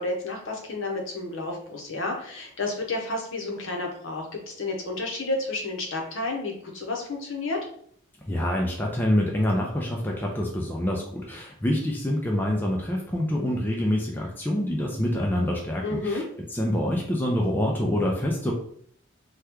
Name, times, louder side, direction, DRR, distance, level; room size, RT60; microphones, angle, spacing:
voice 1, 0.0-7.7 15.8-16.2, left 2 dB, 60° left, 1 dB, 0.7 m, -31 dB
voice 2, 8.3-16.2 16.5-18.5, left 1 dB, 10° left, -1 dB, 0.3 m, -26 dB
2.9 x 2.2 x 3.4 m, 0.63 s
head